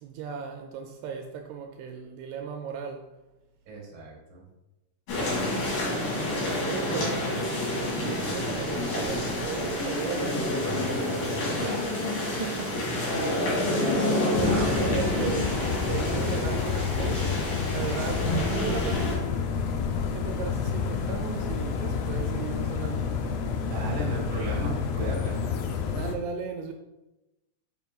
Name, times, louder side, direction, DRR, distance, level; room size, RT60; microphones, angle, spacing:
voice 1, 0.0-3.1 5.9-6.3 6.6-7.1 8.0-11.9 12.3-12.8 14.0-14.5 14.8-17.4 17.7-19.2 20.1-23.2 26.0-26.7, right 6 dB, 80° right, 4 dB, 2.5 m, -36 dB
voice 2, 3.7-4.4 6.8-7.6 7.9-8.2 12.8-13.5 14.3-15.4 15.8-16.1 23.6-25.4, right 3 dB, 50° right, -3 dB, 1.6 m, -35 dB
sound 1, 5.1-19.1, left 1 dB, 55° left, 3.1 m, -28 dB
sound 2, 14.3-26.2, left 6 dB, 90° left, 2.0 m, -29 dB
6.8 x 5.8 x 2.4 m, 0.98 s
omnidirectional pair, 4.9 m